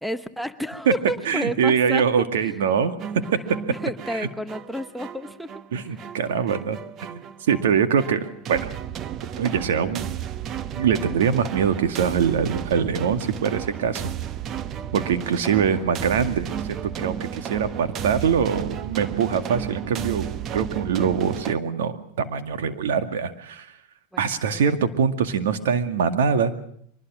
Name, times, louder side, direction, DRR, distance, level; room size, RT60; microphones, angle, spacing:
voice 1, 0.0-2.6 3.7-5.5 5.9-6.5 24.1-24.6, equal, ahead, 9 dB, 0.9 m, -31 dB
voice 2, 1.3-2.9 4.1-4.3 5.7-8.7 9.4-10.1 10.8-14.1 14.9-23.8 24.2-26.6, right 7 dB, 85° right, 9 dB, 2.1 m, -23 dB
sound 1, 3.0-21.5, right 9 dB, 35° right, 0.9 m, -33 dB
23.5 x 20.5 x 6.3 m, 0.67 s
supercardioid pair, 135°, 0 cm